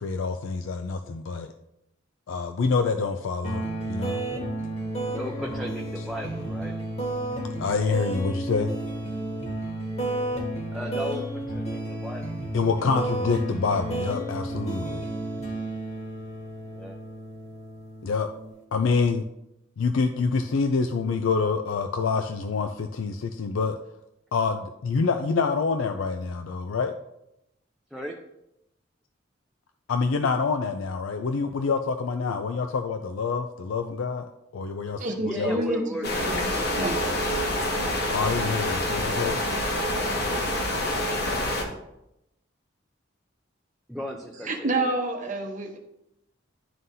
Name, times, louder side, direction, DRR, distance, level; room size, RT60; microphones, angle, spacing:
voice 1, 0.0-1.5 2.3-4.2 7.6-8.7 12.5-15.0 18.0-18.3 18.7-19.2 19.8-23.8 24.3-26.9 29.9-35.6 38.1-39.4, left 4 dB, 85° left, 6 dB, 0.4 m, -26 dB
sound 1, 3.4-18.5, right 1 dB, 35° left, 1.4 m, -32 dB
voice 2, 5.1-6.7 10.7-12.4 16.7-17.0 27.9-28.2 35.2-36.1 36.4-36.8 43.9-44.9, equal, ahead, -1 dB, 0.5 m, -36 dB
voice 3, 35.0-35.8 36.3-37.0 44.4-45.8, right 2 dB, 40° right, 3 dB, 0.9 m, -28 dB
sound 2, 36.0-41.6, left 1 dB, 55° left, 1.1 m, -27 dB
11.0 x 3.8 x 2.7 m, 0.84 s
head